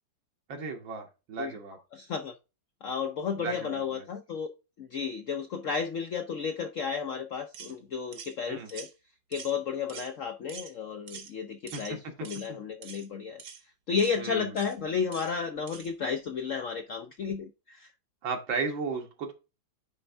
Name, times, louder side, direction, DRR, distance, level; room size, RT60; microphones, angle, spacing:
voice 1, 0.5-1.8 3.4-4.1 8.5-8.7 11.7-11.8 12.5-12.6 14.2-14.5 18.2-19.3, right 4 dB, 80° right, 3 dB, 2.1 m, -35 dB
voice 2, 1.9-2.3 2.8-4.5 4.8-8.9 9.3-13.4 13.9-17.9, left 6 dB, 70° left, 6 dB, 0.7 m, -33 dB
sound 1, 7.5-7.7 8.1-8.3 8.7-8.9 9.3-9.6 9.9-10.1 10.5-10.7 11.1-11.3 11.7-11.9 12.2-12.5 12.8-13.1 13.4-13.6 14.0-14.2 14.6-14.8 15.1-15.3 15.7-15.9, right 7 dB, 60° right, 1.5 m, -45 dB
9.5 x 3.4 x 3.4 m, 0.28 s
omnidirectional pair, 2.1 m